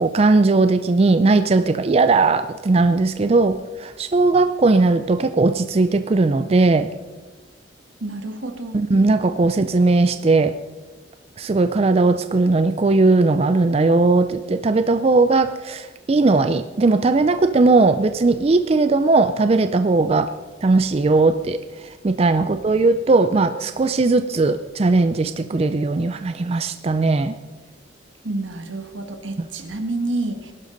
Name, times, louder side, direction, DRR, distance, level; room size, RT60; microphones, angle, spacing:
voice 1, 0.0-6.9 8.7-10.6 11.4-20.3 20.6-27.4, right 3 dB, 30° right, 10 dB, 0.4 m, -18 dB
voice 2, 8.0-8.8 28.2-30.5, right 2 dB, 80° right, 6 dB, 1.6 m, -28 dB
20.5 x 11.5 x 3.9 m, 1.3 s
head